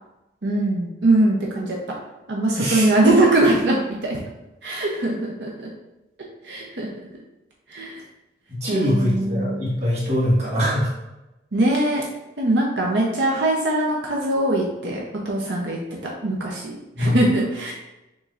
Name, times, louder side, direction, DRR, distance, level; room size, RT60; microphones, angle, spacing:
voice 1, 0.4-1.8 2.3-4.2 4.6-5.7 6.4-6.9 7.7-8.0 8.7-9.6 11.5-12.0 12.4-15.8 16.2-17.7, right 1 dB, 85° right, -2 dB, 0.7 m, -21 dB
voice 2, 2.6-2.9 8.5-10.9 17.0-17.3, equal, 40° right, -6 dB, 1.6 m, -22 dB
6.2 x 3.2 x 2.5 m, 0.98 s
head